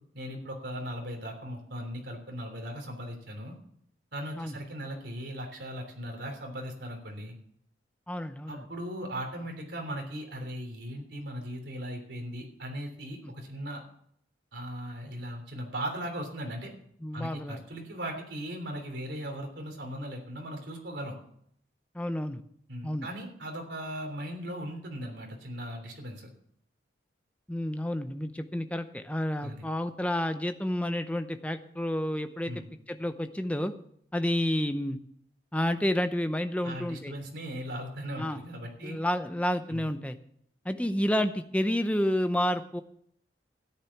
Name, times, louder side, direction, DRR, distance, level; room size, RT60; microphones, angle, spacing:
voice 1, 0.1-3.5 4.1-7.3 8.5-13.8 14.5-16.7 17.1-21.2 22.7-26.3 29.4-29.7 32.5-32.7 36.6-38.9 39.7-39.9, equal, 70° right, 2 dB, 3.3 m, -38 dB
voice 2, 8.1-8.6 17.0-17.6 21.9-22.4 22.8-23.1 27.5-32.5 32.9-33.7 34.1-35.0 35.5-37.1 38.2-38.4 38.8-40.2 40.6-42.8, left 1 dB, 5° left, 9 dB, 0.7 m, -30 dB
13.5 x 10.0 x 5.9 m, 0.68 s
head